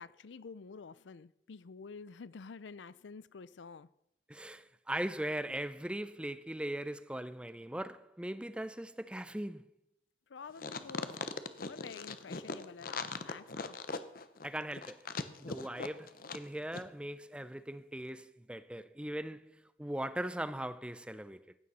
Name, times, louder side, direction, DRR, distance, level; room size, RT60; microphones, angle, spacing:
voice 1, 0.0-3.9 10.3-11.1 11.6-13.8, left 5 dB, 90° left, 0.5 m, -49 dB
voice 2, 4.3-9.7 14.4-15.1 15.4-21.5, right 1 dB, 5° right, 0.5 m, -40 dB
sound 1, 10.6-16.5 16.7-16.8, left 4 dB, 55° left, 0.8 m, -40 dB
15.5 x 9.4 x 5.6 m
head